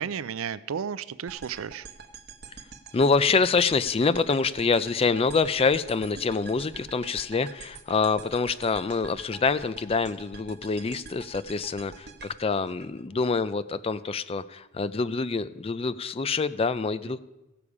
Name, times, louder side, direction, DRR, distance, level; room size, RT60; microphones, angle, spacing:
voice 1, 0.0-1.9, right 7 dB, 75° right, 16 dB, 0.4 m, -33 dB
sound 1, 1.3-13.5, right 4 dB, 50° right, 0.9 m, -46 dB
voice 2, 2.9-17.2, left 4 dB, 25° left, 14 dB, 0.4 m, -26 dB
16.5 x 6.9 x 4.8 m, 1.0 s
head